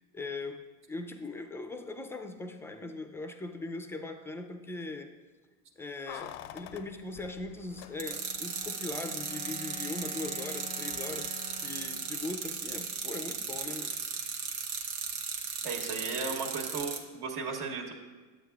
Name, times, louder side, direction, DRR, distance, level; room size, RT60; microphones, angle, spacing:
voice 1, 0.0-5.1 5.8-13.9, left 3 dB, 5° left, 6 dB, 0.3 m, -40 dB
Keys jangling, 6.1-8.4 8.7-8.8, left 12 dB, 65° left, 0.5 m, -46 dB
sound 1, 7.6-14.0, left 3 dB, 15° right, 0.7 m, -48 dB
sound 2, 8.0-17.0, right 5 dB, 90° right, 1.1 m, -36 dB
voice 2, 15.6-17.9, right 4 dB, 65° right, 1 dB, 1.7 m, -35 dB
11.0 x 8.1 x 2.3 m, 1.4 s
supercardioid pair, 110°, 41 cm